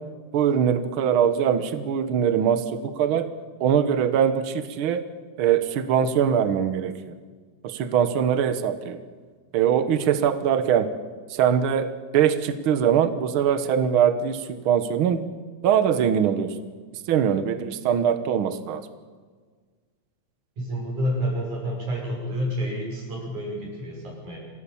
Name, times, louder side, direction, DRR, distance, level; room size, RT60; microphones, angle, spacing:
voice 1, 0.3-3.3 3.6-5.1 5.4-7.0 7.6-9.0 9.5-10.9 11.3-15.2 15.6-16.5 17.1-18.9, right 8 dB, 55° right, 11 dB, 1.7 m, -22 dB
voice 2, 20.6-24.4, equal, 85° right, -1 dB, 7.7 m, -29 dB
26.5 x 16.5 x 7.2 m, 1.5 s
omnidirectional pair, 3.3 m